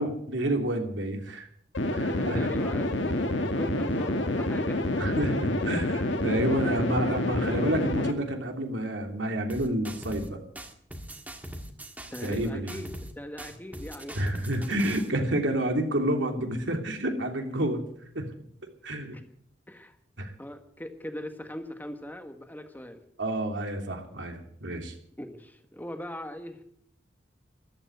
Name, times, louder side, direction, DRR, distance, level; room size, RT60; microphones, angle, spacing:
voice 1, 0.0-1.5 1.9-2.5 5.0-10.4 12.2-12.8 14.1-17.8 18.1-18.3 18.6-19.2 20.2-20.3 23.2-24.9, right 1 dB, 85° right, 3 dB, 3.0 m, -29 dB
sound 1, 1.7-8.1, left 1 dB, 90° left, 1.7 m, -28 dB
voice 2, 2.1-4.8 12.1-12.9 13.2-14.2 19.7-20.0 20.4-23.0 25.2-26.6, left 1 dB, 10° left, 6 dB, 1.6 m, -40 dB
sound 2, 9.5-10.3 10.6-13.1 13.4-15.1, right 1 dB, 10° right, 1.7 m, -41 dB
13.5 x 12.5 x 8.0 m, 0.66 s
head